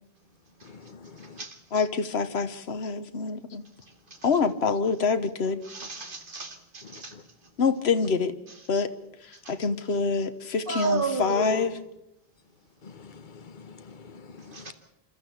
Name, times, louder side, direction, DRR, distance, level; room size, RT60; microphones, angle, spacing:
voice 1, 0.6-1.4 6.9-7.2 12.8-14.7, left 5 dB, 50° left, 11 dB, 1.2 m, -47 dB
voice 2, 1.7-3.6 4.2-5.6 7.6-8.3 8.7-8.9 9.3-11.8, left 5 dB, 85° left, 10 dB, 1.3 m, -26 dB
voice 3, 5.6-7.1 8.5-8.6 9.4-9.5 10.7-11.7 14.5-14.7, right 4 dB, 55° right, 6 dB, 2.5 m, -32 dB
27.5 x 13.5 x 8.3 m, 0.85 s
omnidirectional pair, 1.1 m